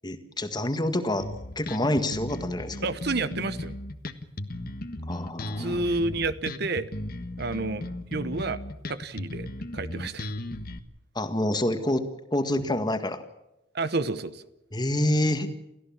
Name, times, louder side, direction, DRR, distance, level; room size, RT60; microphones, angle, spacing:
voice 1, 0.0-1.3 1.6-2.9 5.1-5.8 11.2-12.1 12.3-13.2 14.7-15.5, left 1 dB, 20° left, 8 dB, 1.8 m, -27 dB
Bass guitar, 1.2-10.8, left 1 dB, 50° left, 1.4 m, -36 dB
voice 2, 2.8-3.8 5.6-6.9 7.4-8.6 8.9-9.5 9.7-10.3 13.7-14.4, right 3 dB, 55° right, 13 dB, 1.0 m, -30 dB
29.5 x 14.5 x 7.3 m, 0.94 s
head